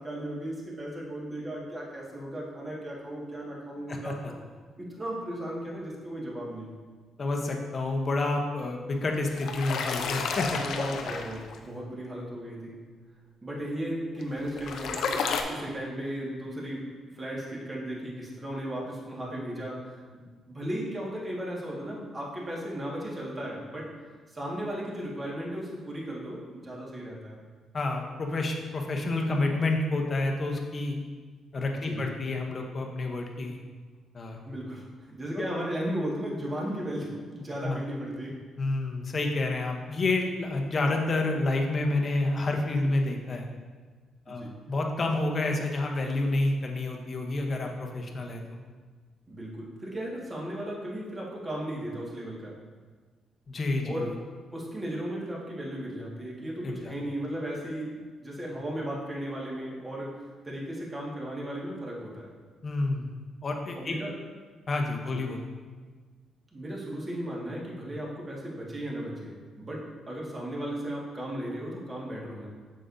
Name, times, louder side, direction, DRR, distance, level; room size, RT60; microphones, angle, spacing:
voice 1, 0.0-4.2 4.8-6.7 10.6-12.8 13.4-15.2 15.5-16.8 17.2-23.9 24.3-27.4 31.8-32.1 34.4-38.3 44.3-44.5 49.3-52.6 53.8-54.1 54.5-60.1 60.4-62.3 63.7-64.1 65.1-65.2 66.5-72.5, right 1 dB, 25° right, -4 dB, 1.9 m, -36 dB
voice 2, 7.2-10.6 27.7-31.0 31.5-33.6 34.1-34.4 35.3-35.4 37.6-37.8 38.6-43.5 44.3-48.4 53.5-54.0 56.6-56.9 62.6-63.1 63.4-64.0 64.7-65.5, left 2 dB, 40° left, 2 dB, 0.9 m, -29 dB
sound 1, 9.1-11.6 14.2-15.4, left 5 dB, 70° left, 0.6 m, -31 dB
7.6 x 6.5 x 2.7 m, 1.5 s
cardioid pair, 90°, 0 cm